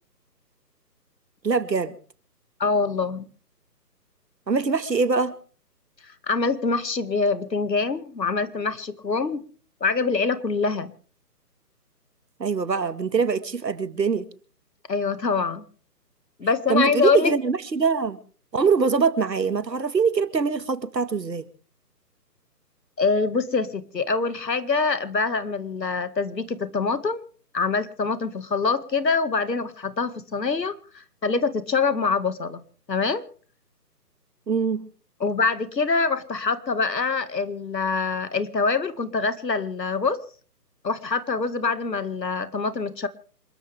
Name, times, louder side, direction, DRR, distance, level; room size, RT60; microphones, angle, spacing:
voice 1, 1.4-1.9 4.5-5.3 12.4-14.3 16.7-18.2 18.5-21.4 34.5-34.9, right 5 dB, 85° right, 1.9 m, -23 dB
voice 2, 2.6-3.3 6.0-9.4 9.8-10.9 14.9-15.6 16.4-17.3 23.0-27.2 27.5-32.6 32.9-33.3 35.2-40.2 40.8-43.1, left 4 dB, 85° left, 2.1 m, -25 dB
27.5 x 13.5 x 3.5 m
figure-of-eight pair, 155°, 49 cm